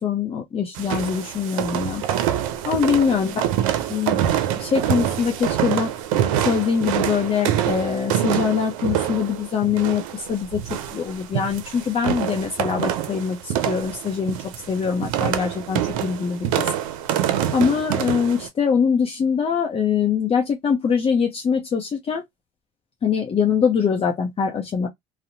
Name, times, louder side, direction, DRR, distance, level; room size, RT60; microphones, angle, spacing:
voice 1, 0.0-2.0 2.7-3.4 3.9-4.2 4.6-5.9 6.4-10.6 10.9-14.4 14.7-16.7 17.5-22.2 23.0-24.9, left 6 dB, 35° left, 0.7 m, -23 dB
sound 1, 0.8-18.5, right 11 dB, 85° right, 0.4 m, -25 dB
2.6 x 2.0 x 2.6 m
hypercardioid pair, 70°, 17 cm